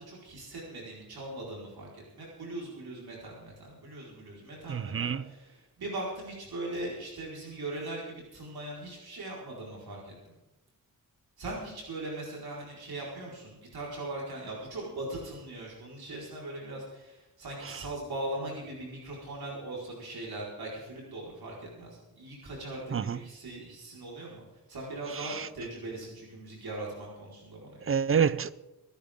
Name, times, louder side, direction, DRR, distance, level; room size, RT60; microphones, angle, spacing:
voice 1, 0.0-10.1 11.4-24.4 24.7-27.9, right 2 dB, 85° right, 4.6 m, -40 dB
voice 2, 4.7-5.3 17.7-17.8 22.9-23.2 25.1-25.5 27.8-28.5, right 7 dB, 35° right, 0.5 m, -28 dB
25.5 x 10.5 x 3.7 m
wide cardioid pair, 135°, 36 cm